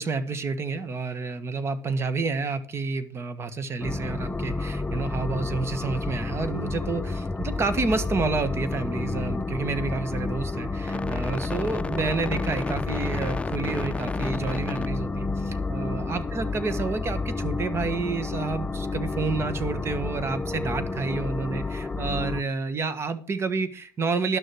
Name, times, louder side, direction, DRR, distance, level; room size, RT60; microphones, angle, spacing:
voice 1, 0.0-24.4, right 4 dB, 35° right, 13 dB, 1.6 m, -29 dB
sound 1, 3.8-22.4, left 3 dB, 15° left, 0.7 m, -30 dB
11.5 x 6.5 x 6.2 m, 0.41 s
supercardioid pair, 80°, 7 cm